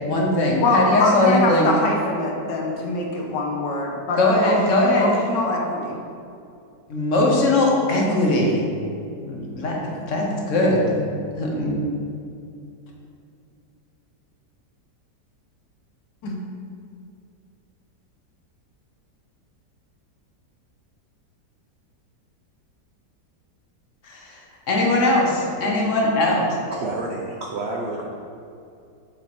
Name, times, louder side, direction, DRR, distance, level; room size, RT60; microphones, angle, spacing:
voice 1, 0.0-1.7 4.2-5.1 6.9-8.6 9.3-9.8 10.1-11.8 24.0-24.4 24.7-26.5, left 1 dB, 50° left, -1 dB, 1.2 m, -20 dB
voice 2, 0.6-4.6 4.9-6.0 16.2-16.4, left 2 dB, 85° left, 0 dB, 1.6 m, -23 dB
voice 3, 26.7-28.1, right 2 dB, 75° right, -1 dB, 0.6 m, -29 dB
7.3 x 3.7 x 4.4 m, 2.5 s
omnidirectional pair, 1.9 m